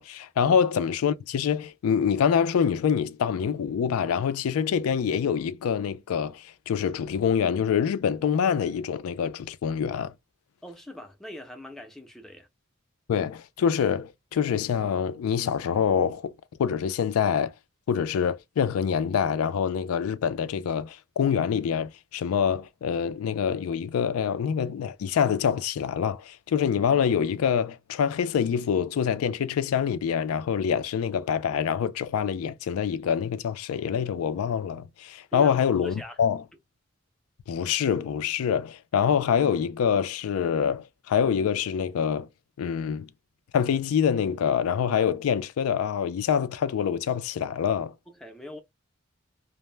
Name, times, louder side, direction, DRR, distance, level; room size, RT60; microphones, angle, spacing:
voice 1, 0.0-10.1 13.1-16.3 16.6-17.5 17.9-36.4 37.5-42.3 42.6-43.1 43.5-47.9, left 7 dB, 85° left, 0.3 m, -25 dB
voice 2, 10.6-12.5 35.3-35.6 35.8-36.2 48.1-48.6, equal, ahead, 0.4 m, -41 dB
2.1 x 2.0 x 3.1 m
head